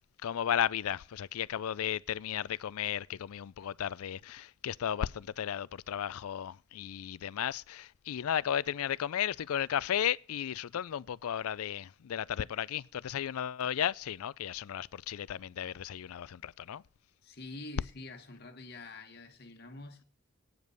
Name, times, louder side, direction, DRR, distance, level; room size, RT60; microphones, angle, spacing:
voice 1, 0.2-16.8, left 9 dB, 90° left, 0.4 m, -34 dB
voice 2, 17.2-20.0, left 2 dB, 50° left, 1.5 m, -46 dB
9.3 x 5.2 x 8.0 m
head